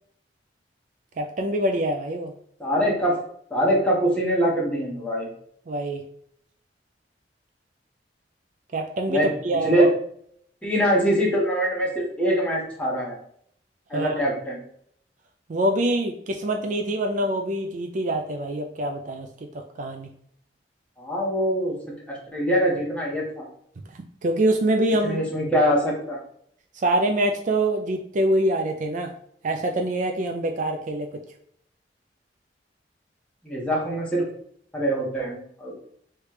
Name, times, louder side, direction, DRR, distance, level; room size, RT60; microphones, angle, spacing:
voice 1, 1.2-2.3 5.7-6.1 8.7-9.9 13.9-14.2 15.5-20.1 23.9-25.2 26.7-29.1 29.4-31.1, right 1 dB, 45° right, 4 dB, 0.4 m, -25 dB
voice 2, 2.6-3.2 3.5-5.3 9.1-9.3 9.6-9.9 10.6-13.2 13.9-14.6 21.0-21.8 22.1-23.4 25.0-26.2 33.4-34.3 34.7-35.7, equal, 5° left, -4 dB, 1.3 m, -23 dB
3.3 x 3.1 x 4.7 m, 0.67 s
head